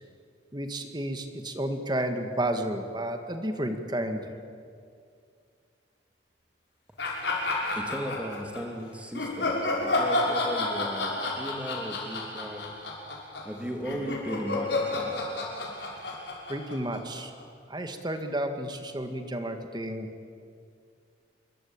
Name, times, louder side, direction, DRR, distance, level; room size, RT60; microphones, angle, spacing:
voice 1, 0.5-4.3 16.5-17.3 17.7-20.1, right 1 dB, 25° right, 6 dB, 1.9 m, -31 dB
sound 1, 7.0-8.6 9.1-17.4, left 2 dB, 70° left, 5.8 m, -31 dB
voice 2, 7.8-12.7 13.4-15.1, equal, 5° right, 3 dB, 2.6 m, -36 dB
27.0 x 23.0 x 8.9 m, 2.3 s
head